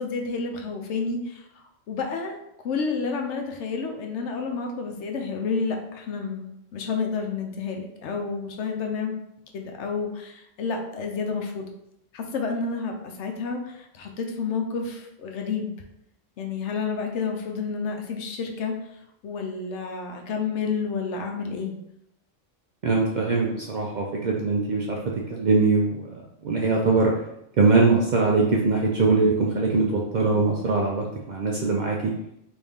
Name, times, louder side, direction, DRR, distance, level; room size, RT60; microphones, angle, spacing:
voice 1, 0.0-1.4 1.9-2.3 2.6-9.1 9.5-11.7 12.1-13.6 13.9-15.7 16.4-18.7 19.2-21.7, left 5 dB, 70° left, 3 dB, 0.9 m, -30 dB
voice 2, 22.8-25.0 25.3-26.0 26.4-27.1 27.6-32.1, right 3 dB, 75° right, -2 dB, 0.4 m, -22 dB
3.3 x 2.6 x 3.5 m, 0.80 s
omnidirectional pair, 1.3 m